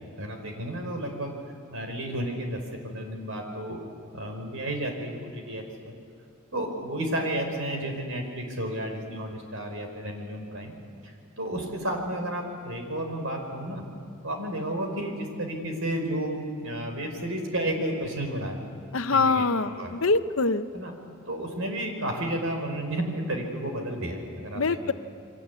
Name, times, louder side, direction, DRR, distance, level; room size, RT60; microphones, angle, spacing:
voice 1, 0.2-1.3 1.7-3.8 4.1-5.9 6.5-10.7 11.0-13.8 14.2-18.6 18.9-19.5 19.8-20.0 20.7-20.9 21.3-24.9, right 1 dB, 65° right, 4 dB, 5.1 m, -32 dB
voice 2, 18.9-20.7 24.5-24.9, left 3 dB, 70° left, 10 dB, 0.9 m, -24 dB
28.5 x 23.5 x 8.4 m, 2.4 s
head